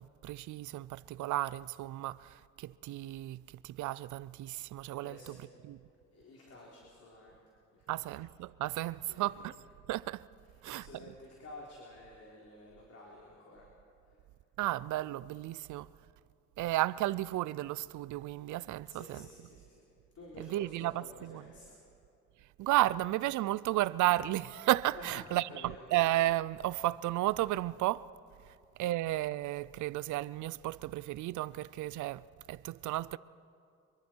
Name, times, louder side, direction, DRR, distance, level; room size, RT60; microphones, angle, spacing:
voice 1, 0.0-5.2 5.6-5.8 7.9-9.5 9.9-10.2 10.6-11.1 14.6-15.9 16.6-19.3 20.4-21.5 22.6-28.1 28.8-32.2 32.5-33.2, right 16 dB, 75° right, 0.5 m, -33 dB
voice 2, 5.0-5.4 6.1-7.3 7.7-8.0 9.1-9.5 10.7-13.7 14.0-14.2 18.8-19.8 20.1-21.8 24.9-25.8 28.5-28.6, left 2 dB, 55° left, 3.9 m, -51 dB
24.5 x 23.0 x 4.6 m
cardioid pair, 90°, 30 cm